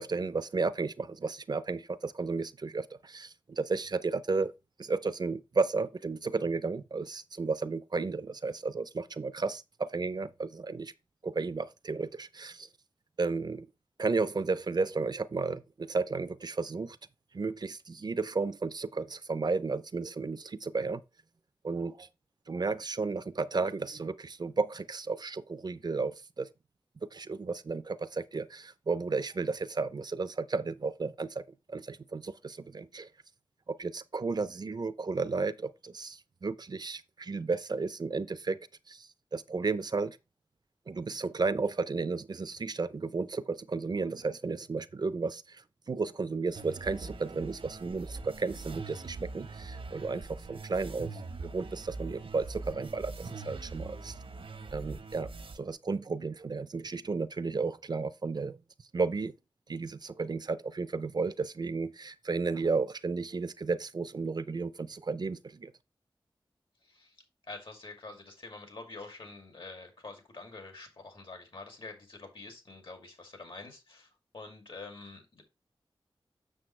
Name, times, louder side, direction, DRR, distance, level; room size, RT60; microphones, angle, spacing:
voice 1, 0.0-4.5 4.8-10.9 11.2-12.7 13.2-13.7 14.0-17.0 17.3-21.0 21.6-22.1 22.5-26.5 27.1-31.4 31.7-33.1 33.7-38.6 38.9-40.2 40.9-45.6 45.9-54.1 54.7-55.3 55.6-58.6 58.9-59.3 59.7-65.7, right 4 dB, 50° right, 0.5 m, -33 dB
sound 1, 46.5-55.6, right 3 dB, 85° right, 1.1 m, -42 dB
voice 2, 67.5-74.1 74.3-75.4, left 3 dB, 70° left, 2.6 m, -46 dB
7.5 x 6.6 x 3.2 m
wide cardioid pair, 95°, 9 cm